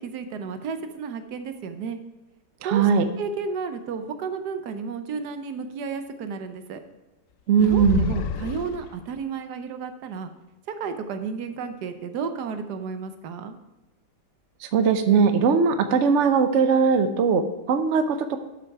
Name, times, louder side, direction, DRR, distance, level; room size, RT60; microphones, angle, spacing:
voice 1, 0.0-2.0 2.6-2.9 3.2-6.8 7.6-10.3 10.7-13.6, right 5 dB, 75° right, 9 dB, 1.3 m, -32 dB
voice 2, 2.6-3.1 7.5-8.1 14.6-18.4, right 6 dB, 60° right, 9 dB, 0.9 m, -20 dB
sound 1, 7.6-9.2, left 7 dB, 70° left, 0.8 m, -30 dB
12.0 x 6.0 x 4.7 m, 1.0 s
omnidirectional pair, 1.8 m